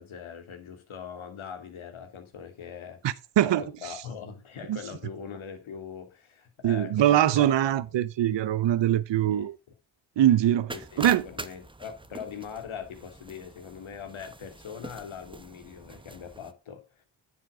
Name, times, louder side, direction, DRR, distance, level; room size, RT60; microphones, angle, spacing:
voice 1, 0.0-3.0 3.4-7.5 9.3-9.5 10.7-17.0, left 7 dB, 75° left, 2.6 m, -42 dB
voice 2, 3.0-3.9 4.7-4.8 6.6-9.6 10.2-10.7 11.0-11.2, right 11 dB, 60° right, 0.8 m, -23 dB
sound 1, 10.7-16.5, right 2 dB, 10° right, 0.8 m, -43 dB
9.5 x 7.3 x 3.7 m
cardioid pair, 60°, 49 cm